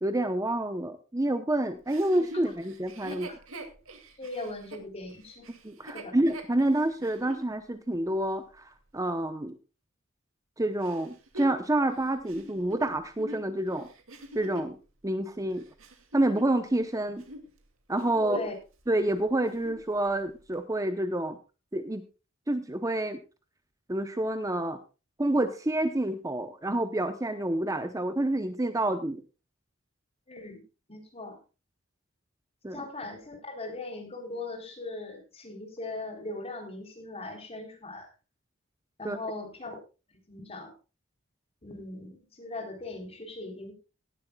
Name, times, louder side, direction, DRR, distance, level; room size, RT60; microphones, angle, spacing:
voice 1, 0.0-3.3 5.6-9.6 10.6-13.9 14.3-14.8 15.0-15.6 16.1-17.2 17.9-18.4 18.9-21.4 21.7-22.0 22.5-23.2 23.9-24.8 25.2-29.2 32.6-32.9 39.0-39.2, right 1 dB, 15° right, 9 dB, 0.8 m, -28 dB
Chuckle chortle, 1.9-7.5 8.0-8.1 10.8-14.8 15.4-16.9 17.1-17.5 17.9-18.6 18.9-19.0 19.4-19.9 20.5-20.6, right 1 dB, 90° right, 2.5 m, -44 dB
voice 2, 4.2-5.5 5.9-6.2 18.2-18.6 30.3-30.6 30.9-31.4 32.7-38.1 39.0-39.8 40.3-40.7 41.6-43.8, left 2 dB, 30° left, 3 dB, 3.7 m, -39 dB
18.0 x 11.5 x 2.3 m, 0.31 s
head